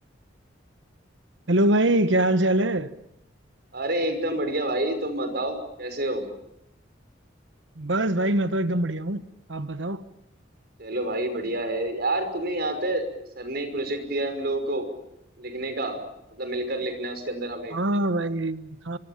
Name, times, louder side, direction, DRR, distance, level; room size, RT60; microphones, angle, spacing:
voice 1, 1.5-2.9 7.8-9.2 9.5-10.0 17.7-19.0, right 1 dB, 75° right, 1.3 m, -23 dB
voice 2, 3.7-6.3 10.8-13.0 13.4-14.9 15.4-16.0 16.3-17.8, right 1 dB, 55° right, 5.6 m, -28 dB
27.0 x 25.0 x 7.3 m
head